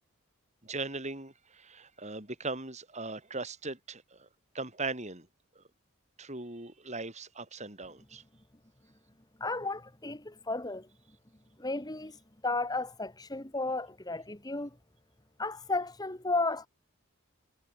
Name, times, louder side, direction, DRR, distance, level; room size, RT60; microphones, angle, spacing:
voice 1, 0.6-4.3 4.5-5.3 5.6-5.7 6.2-8.2, right 3 dB, 30° right, 5.6 m, -39 dB
voice 2, 9.4-10.9 11.6-14.8 15.4-16.7, left 2 dB, 15° left, 1.6 m, -33 dB
head